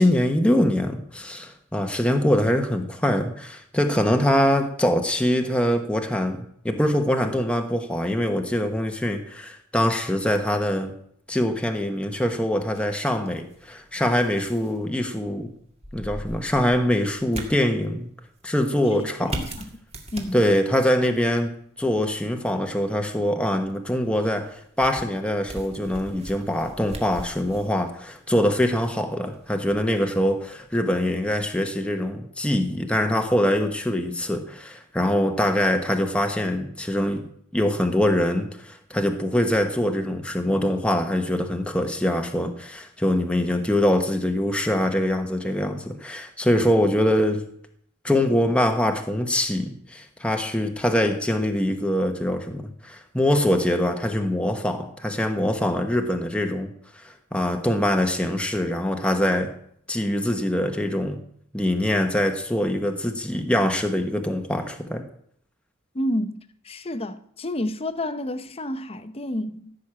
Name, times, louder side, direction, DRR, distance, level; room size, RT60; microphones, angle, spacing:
voice 1, 0.0-6.4 6.6-10.9 11.3-15.5 15.9-18.1 18.4-19.4 20.3-21.5 21.8-37.2 37.5-47.4 48.0-59.5 59.9-61.2 61.5-65.0, left 1 dB, 5° left, 1.1 m, -23 dB
sound 1, 12.7-30.8, right 1 dB, 30° right, 2.0 m, -42 dB
voice 2, 18.9-19.7 20.1-20.4 65.9-66.4 66.6-69.7, left 1 dB, 30° left, 0.9 m, -30 dB
15.5 x 6.5 x 8.8 m
head